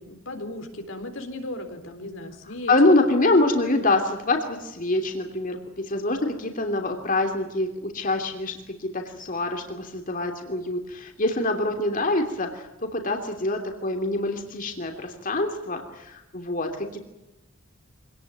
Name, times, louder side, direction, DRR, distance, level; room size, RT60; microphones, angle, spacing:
voice 1, 0.0-3.1, left 1 dB, 80° left, 6 dB, 3.9 m, -36 dB
voice 2, 2.7-17.0, left 2 dB, 45° left, 4 dB, 3.0 m, -25 dB
25.5 x 19.0 x 9.2 m, 0.97 s
head